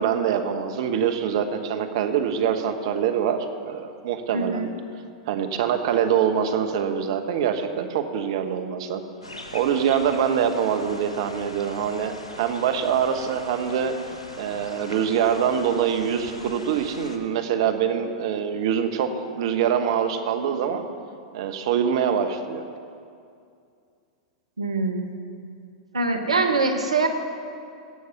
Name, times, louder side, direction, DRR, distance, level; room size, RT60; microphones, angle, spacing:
voice 1, 0.0-4.7 5.3-9.0 9.5-13.9 14.4-20.9 21.3-22.6, right 8 dB, 60° right, 7 dB, 1.0 m, -24 dB
voice 2, 4.3-4.8 24.6-25.1 25.9-27.1, right 3 dB, 85° right, 5 dB, 1.2 m, -23 dB
sound 1, 9.2-17.2, left 2 dB, 90° left, 1.2 m, -41 dB
17.0 x 6.5 x 5.7 m, 2.4 s
figure-of-eight pair, 100°, 3 cm